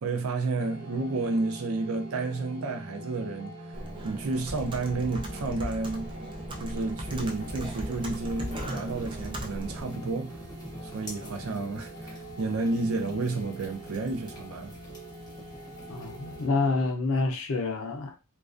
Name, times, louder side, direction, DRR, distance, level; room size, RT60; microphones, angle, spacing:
voice 1, 0.0-6.2 6.6-10.4 10.8-14.7, right 3 dB, 85° right, 0.5 m, -31 dB
sound 1, 0.6-16.9, equal, 40° right, 1.0 m, -44 dB
Computer keyboard, 3.7-9.9, right 1 dB, 25° right, 0.4 m, -38 dB
sound 2, 7.0-16.5, equal, 20° left, 0.8 m, -46 dB
voice 2, 15.9-18.1, left 3 dB, 70° left, 0.5 m, -28 dB
2.2 x 2.2 x 2.4 m
head